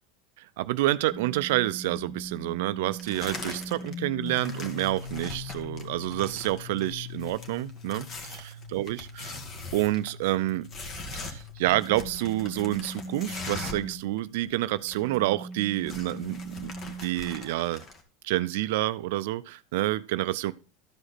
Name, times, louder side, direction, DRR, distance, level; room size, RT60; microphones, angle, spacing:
voice 1, 0.4-9.4 9.7-10.7 11.1-17.8 18.2-20.5, right 16 dB, 75° right, 0.4 m, -28 dB
sound 1, 1.1-14.2 14.7-17.4, left 1 dB, 85° left, 4.1 m, -41 dB
sound 2, 3.0-3.9 4.2-13.9 14.2-14.3 14.5-15.2 15.5-18.0, left 3 dB, 40° left, 1.7 m, -42 dB
13.0 x 5.0 x 4.1 m
supercardioid pair, 110°, 0 cm